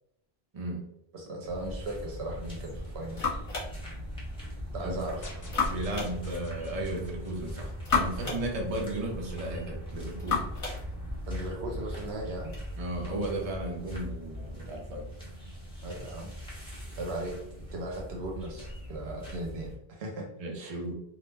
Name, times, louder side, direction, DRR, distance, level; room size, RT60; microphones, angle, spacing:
voice 1, 1.1-3.3 4.7-5.3 11.3-12.5 15.8-16.3 17.0-20.3 20.6-20.8, right 1 dB, 85° right, 0 dB, 0.9 m, -37 dB
sound 1, 1.5-19.7, equal, 5° left, 0.8 m, -41 dB
sound 2, 2.5-12.6, left 4 dB, 50° left, 1.1 m, -36 dB
sound 3, 5.2-8.5, left 2 dB, 30° left, 0.4 m, -52 dB
voice 2, 5.7-10.5 12.8-15.1 20.4-20.9, right 1 dB, 45° right, 0 dB, 0.6 m, -35 dB
2.4 x 2.1 x 3.2 m, 0.77 s
omnidirectional pair, 1.0 m